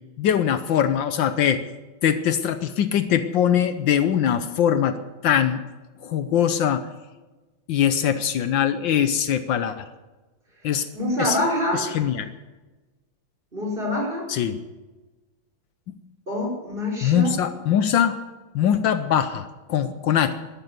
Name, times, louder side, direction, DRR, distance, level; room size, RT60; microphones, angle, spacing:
voice 1, 0.2-1.6 2.0-5.0 5.2-5.6 6.0-6.8 7.7-9.9 10.6-10.9 11.2-11.4 11.7-12.3 14.3-14.6 17.0-18.2 18.5-20.3, left 9 dB, 75° left, 10 dB, 1.5 m, -22 dB
voice 2, 10.9-11.9 13.5-14.2 16.3-17.3, left 1 dB, 25° right, -1 dB, 4.9 m, -25 dB
13.0 x 11.5 x 8.1 m, 1.2 s
omnidirectional pair, 2.1 m